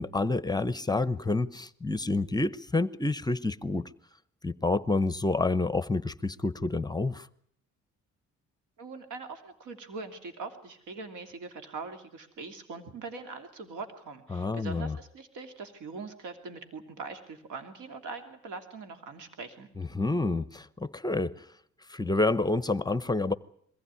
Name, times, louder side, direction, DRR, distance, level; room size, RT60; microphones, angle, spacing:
voice 1, 0.0-3.9 4.4-7.3 14.3-15.0 19.8-21.4 21.9-23.3, left 2 dB, 15° left, 0.9 m, -28 dB
voice 2, 8.8-19.7, right 4 dB, 85° right, 2.8 m, -42 dB
22.5 x 16.0 x 9.7 m
cardioid pair, 90°, 30 cm